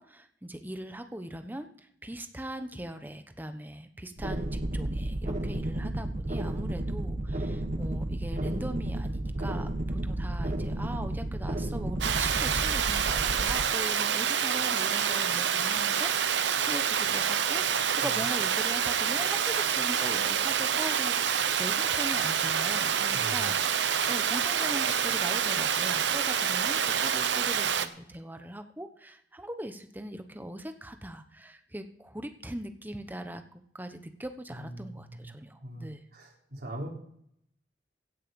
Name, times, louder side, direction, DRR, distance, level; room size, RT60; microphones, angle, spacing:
voice 1, 0.0-23.6 24.1-36.0, right 1 dB, 10° right, 7 dB, 1.1 m, -40 dB
sound 1, 4.2-13.6, right 1 dB, 45° right, 1.1 m, -32 dB
voice 2, 5.5-6.0 18.0-18.1 23.1-23.5 34.5-35.3 35.6-36.9, right 1 dB, 60° right, -2 dB, 4.0 m, -42 dB
Water, 12.0-27.9, right 8 dB, 90° right, 0.9 m, -27 dB
16.5 x 6.6 x 7.1 m, 0.68 s
head